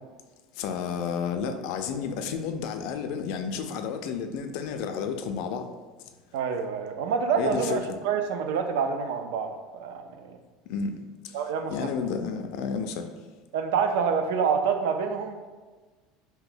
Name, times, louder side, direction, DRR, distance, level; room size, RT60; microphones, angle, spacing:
voice 1, 0.5-5.7 7.4-7.8 10.7-10.9 11.2-11.4 11.7-13.1, left 6 dB, 60° left, 6 dB, 0.3 m, -31 dB
voice 2, 6.3-10.4 11.3-11.9 13.5-15.3, right 6 dB, 85° right, 6 dB, 0.4 m, -27 dB
2.8 x 2.1 x 3.8 m, 1.3 s
cardioid pair, 160°, 0 cm